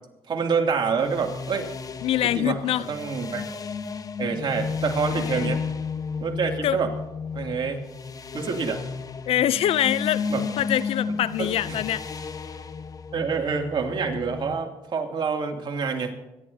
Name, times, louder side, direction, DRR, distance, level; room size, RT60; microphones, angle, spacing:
voice 1, 0.3-1.7 2.2-2.6 2.9-3.4 4.2-5.6 6.2-6.9 7.3-7.8 8.3-8.8 10.3-10.5 11.4-11.8 13.1-16.1, right 5 dB, 45° right, 2.6 m, -27 dB
sound 1, 0.9-14.5, left 5 dB, 35° left, 1.0 m, -33 dB
voice 2, 2.0-2.9 5.1-5.5 6.6-6.8 9.3-10.2 10.6-12.0, left 11 dB, 65° left, 0.5 m, -24 dB
25.5 x 11.0 x 2.8 m
cardioid pair, 80°, 11 cm